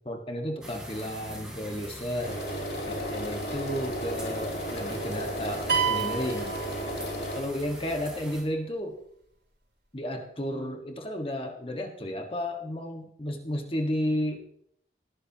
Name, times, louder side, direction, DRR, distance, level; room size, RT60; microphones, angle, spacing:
voice 1, 0.0-2.4 2.8-6.5 7.3-9.0 9.9-14.4, equal, 30° left, 3 dB, 1.6 m, -33 dB
sound 1, 0.6-8.4, equal, 5° right, 3.4 m, -43 dB
sound 2, 2.2-7.4, equal, 60° left, 3.1 m, -34 dB
sound 3, 5.7-7.4, right 6 dB, 85° right, 4.4 m, -29 dB
19.5 x 12.5 x 2.9 m, 0.68 s
head